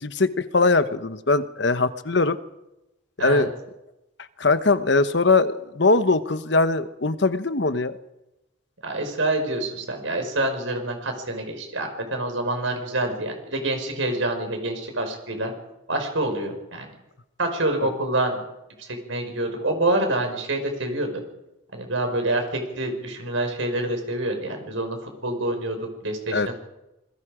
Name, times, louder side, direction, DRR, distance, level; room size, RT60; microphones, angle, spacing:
voice 1, 0.0-2.4 3.2-3.5 4.4-8.0 26.3-26.5, left 3 dB, 60° left, 12 dB, 1.0 m, -21 dB
voice 2, 8.8-15.5 15.9-16.9 17.4-18.4 18.9-21.2 21.7-26.5, right 1 dB, 85° right, 4 dB, 5.3 m, -27 dB
27.5 x 21.5 x 5.0 m, 0.95 s
head